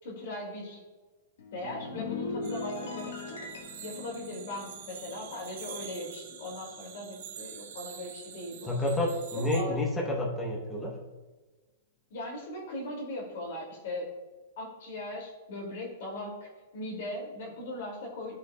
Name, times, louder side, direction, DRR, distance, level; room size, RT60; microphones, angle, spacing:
voice 1, 0.0-0.8 1.5-3.4 3.8-8.7 9.5-9.8 12.1-14.1 14.6-18.4, left 1 dB, 55° left, 0 dB, 2.2 m, -39 dB
sound 1, 1.4-6.0 6.3-6.6, left 3 dB, 75° left, 1.4 m, -40 dB
sound 2, 2.4-9.6, right 8 dB, 55° right, 0.8 m, -46 dB
voice 2, 8.7-11.0, left 1 dB, 5° left, -2 dB, 0.9 m, -29 dB
14.0 x 5.5 x 2.2 m, 1.3 s
supercardioid pair, 175°, 0 cm